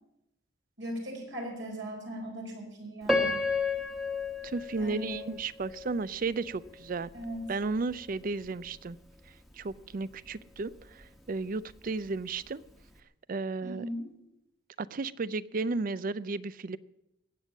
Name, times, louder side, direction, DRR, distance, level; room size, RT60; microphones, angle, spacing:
voice 1, 0.8-3.4 4.7-5.3 7.1-7.4 13.6-14.1, equal, 70° right, 1 dB, 4.5 m, -39 dB
Piano, 3.1-6.1 6.7-6.8 7.4-7.6, left 3 dB, ahead, 1.3 m, -31 dB
voice 2, 4.4-7.1 7.5-9.0 9.6-12.6 13.3-13.8 14.8-16.8, right 3 dB, 45° right, 19 dB, 0.5 m, -34 dB
20.0 x 8.2 x 7.2 m, 0.85 s
head